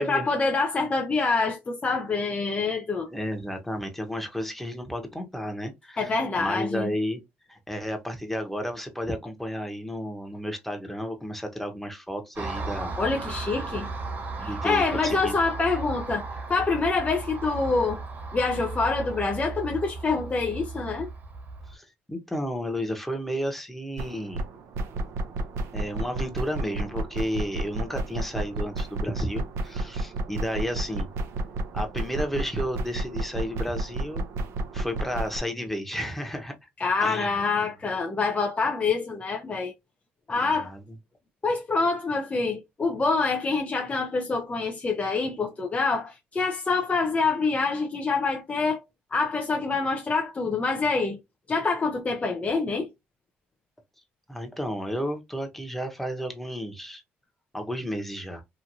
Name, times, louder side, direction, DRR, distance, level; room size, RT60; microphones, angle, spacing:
voice 1, 0.0-3.1 6.0-6.9 13.0-13.9 14.4-16.2 16.5-18.0 18.3-21.1 36.8-39.7 40.3-40.7 41.4-48.8 49.1-51.2 51.5-52.9, left 4 dB, 30° left, 0.5 m, -26 dB
voice 2, 3.1-7.2 7.5-12.9 14.4-15.4 21.7-24.4 25.7-31.1 31.7-34.3 34.7-36.5 37.0-37.4 40.3-40.8 54.3-57.0 57.5-58.4, equal, 5° left, 1.0 m, -32 dB
Car passing by, 12.4-21.7, right 3 dB, 45° right, 1.2 m, -35 dB
sound 1, 24.0-35.4, right 2 dB, 75° right, 0.6 m, -32 dB
3.0 x 2.5 x 2.5 m
supercardioid pair, 70°, 5 cm